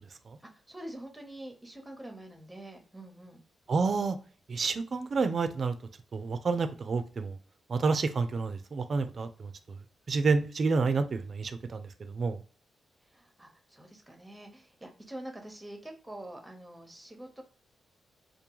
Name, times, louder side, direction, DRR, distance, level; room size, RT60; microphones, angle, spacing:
voice 1, 0.5-3.4 13.1-17.4, right 1 dB, 10° right, 3 dB, 0.8 m, -46 dB
voice 2, 3.7-4.2 4.5-5.7 6.1-7.4 7.7-9.5 10.1-12.4, right 4 dB, 55° right, 9 dB, 0.3 m, -29 dB
2.2 x 2.2 x 3.0 m, 0.40 s
cardioid pair, 60°, 0 cm